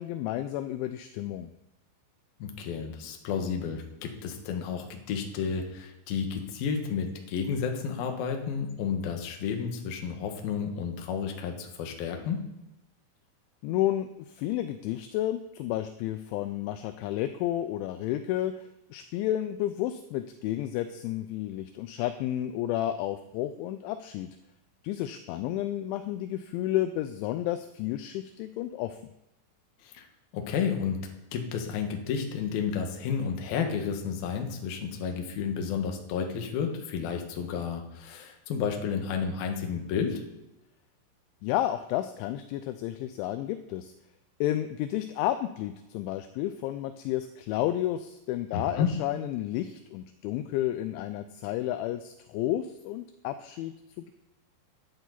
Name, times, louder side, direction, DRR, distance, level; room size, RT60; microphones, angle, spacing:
voice 1, 0.0-1.5 13.6-18.6 18.9-24.3 24.8-29.0 41.4-43.9 44.4-54.1, left 13 dB, 85° left, 9 dB, 2.7 m, -31 dB
voice 2, 2.4-12.4 29.8-30.0 30.3-40.2 48.5-48.9, left 6 dB, 65° left, 3 dB, 2.7 m, -31 dB
12.5 x 11.5 x 4.0 m, 0.93 s
omnidirectional pair, 5.8 m